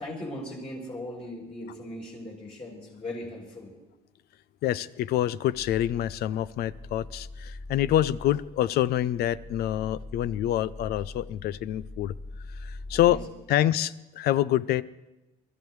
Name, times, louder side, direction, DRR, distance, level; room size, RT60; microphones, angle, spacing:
voice 1, 0.0-3.8 12.9-13.2, left 1 dB, 35° left, -3 dB, 4.9 m, -38 dB
voice 2, 4.6-12.1 12.6-13.2 13.5-14.8, left 12 dB, 70° left, 18 dB, 0.5 m, -26 dB
sound 1, 5.5-13.3, left 2 dB, 10° left, 2.6 m, -43 dB
23.0 x 13.5 x 3.2 m, 1.0 s
cardioid pair, 110°, 17 cm